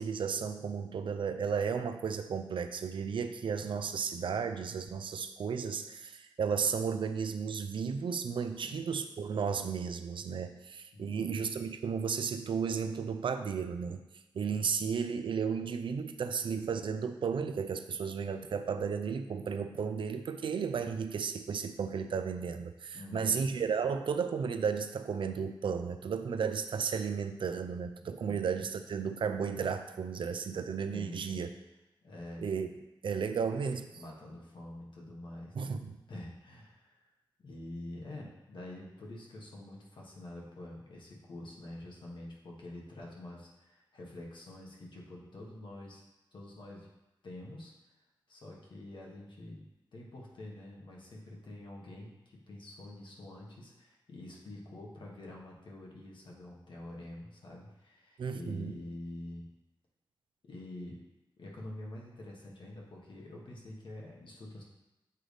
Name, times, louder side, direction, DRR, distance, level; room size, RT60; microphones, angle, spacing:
voice 1, 0.0-14.0 14.3-31.5 32.4-32.7 33.0-33.9 35.6-36.0 58.2-58.8, right 6 dB, 80° right, 8 dB, 0.4 m, -34 dB
voice 2, 10.9-11.3 22.9-23.4 28.2-28.4 30.9-31.4 32.0-32.4 33.9-35.8 36.1-36.9 37.4-46.0 46.3-46.9 47.2-47.7 48.3-49.6 49.9-59.4 60.4-61.1 61.4-64.6, left 1 dB, 70° left, -2 dB, 1.4 m, -47 dB
7.4 x 4.0 x 3.3 m, 0.98 s
wide cardioid pair, 105°, 8 cm